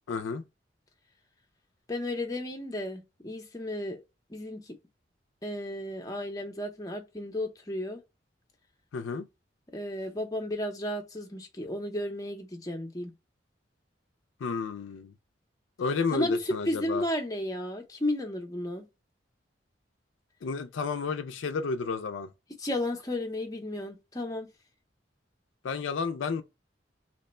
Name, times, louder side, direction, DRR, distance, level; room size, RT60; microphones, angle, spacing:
voice 1, 0.1-0.4 8.9-9.2 14.4-15.1 15.8-17.0 20.4-22.3 25.6-26.4, left 4 dB, 85° left, 0.4 m, -31 dB
voice 2, 1.9-4.0 4.3-4.8 5.4-8.0 9.7-13.1 16.1-18.9 22.6-24.5, left 1 dB, 20° left, 0.6 m, -33 dB
2.9 x 2.1 x 4.1 m
head